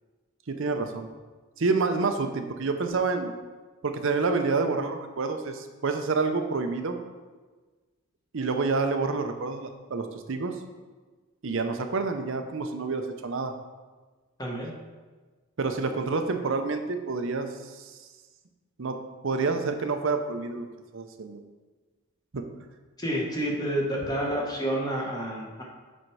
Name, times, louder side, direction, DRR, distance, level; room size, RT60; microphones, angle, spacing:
voice 1, 0.5-1.1 1.6-3.3 3.8-7.0 8.3-10.6 11.4-13.5 15.6-18.0 18.8-20.7 20.9-21.4 22.3-22.5, right 4 dB, 60° right, 7 dB, 0.6 m, -28 dB
voice 2, 14.4-14.7 23.0-25.6, equal, 15° left, -2 dB, 1.2 m, -29 dB
7.7 x 4.4 x 4.7 m, 1.3 s
head